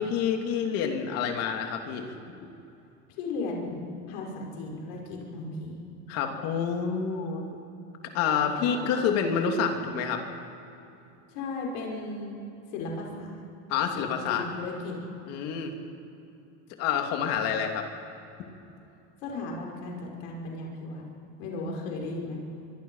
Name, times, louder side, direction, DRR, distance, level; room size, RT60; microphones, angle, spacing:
voice 1, 0.0-2.5 6.1-7.6 8.1-10.2 13.7-14.5 15.3-15.7 16.8-17.9, left 7 dB, 55° left, 3 dB, 3.0 m, -28 dB
voice 2, 3.2-5.8 8.6-9.2 11.3-12.3 12.7-13.4 13.9-14.9 19.2-21.0 21.4-22.4, left 3 dB, 85° left, -1 dB, 5.8 m, -36 dB
25.0 x 24.0 x 5.8 m, 2.8 s
cardioid pair, 180°, 30 cm